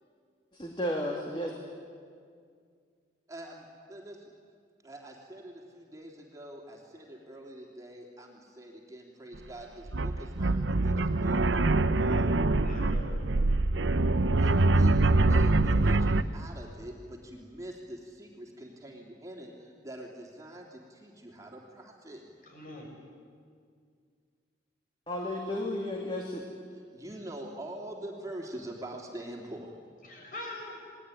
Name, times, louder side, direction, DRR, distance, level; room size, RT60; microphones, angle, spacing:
voice 1, 0.5-1.6 25.1-26.4, left 1 dB, 25° left, 0 dB, 2.5 m, -33 dB
voice 2, 3.3-4.3 4.8-11.4 14.4-22.2 26.7-29.7, right 1 dB, 15° right, -1 dB, 3.1 m, -44 dB
sound 1, 9.4-9.5 9.9-16.2, right 2 dB, 80° right, 0.9 m, -24 dB
voice 3, 12.0-12.3 12.6-13.3 22.5-22.9 30.0-30.8, left 2 dB, 45° left, 1 dB, 6.7 m, -43 dB
29.0 x 20.0 x 9.9 m, 2.2 s
head